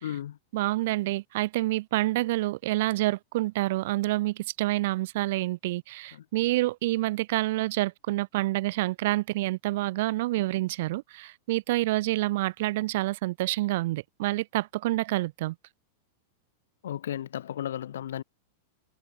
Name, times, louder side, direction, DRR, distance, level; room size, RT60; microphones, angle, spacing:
voice 1, 0.0-0.4 6.1-6.2 16.8-18.2, left 11 dB, 85° left, 4.3 m, -34 dB
voice 2, 0.5-15.6, right 18 dB, 55° right, 2.6 m, -28 dB
supercardioid pair, 160°, 0 cm